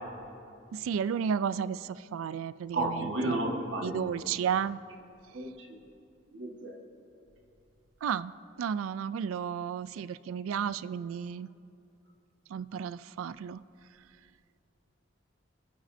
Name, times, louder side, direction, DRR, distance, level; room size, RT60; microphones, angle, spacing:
voice 1, 0.7-3.4 3.8-4.8 8.0-8.3 8.6-11.5 12.5-13.6, right 7 dB, 90° right, 16 dB, 0.3 m, -33 dB
voice 2, 2.7-4.0 5.3-5.5 6.3-6.8, right 2 dB, 65° right, 0 dB, 1.6 m, -32 dB
27.5 x 9.3 x 2.7 m, 2.6 s
head